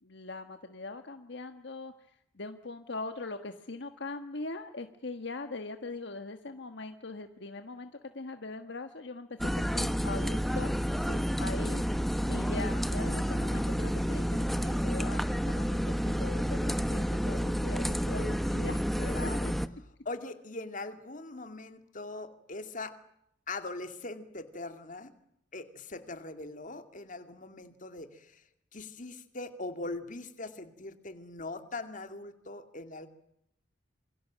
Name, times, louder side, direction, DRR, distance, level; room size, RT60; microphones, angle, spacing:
voice 1, 0.0-1.9 2.3-10.7 11.4-11.8 12.3-18.8 19.2-19.3, left 3 dB, 65° left, 7 dB, 1.5 m, -41 dB
sound 1, 9.4-19.7, equal, ahead, 0.9 m, -30 dB
voice 2, 19.0-19.5 20.0-23.0 23.5-25.1 25.5-28.4 28.7-33.1, left 2 dB, 45° left, 8 dB, 2.4 m, -41 dB
27.5 x 23.5 x 7.6 m, 0.76 s
head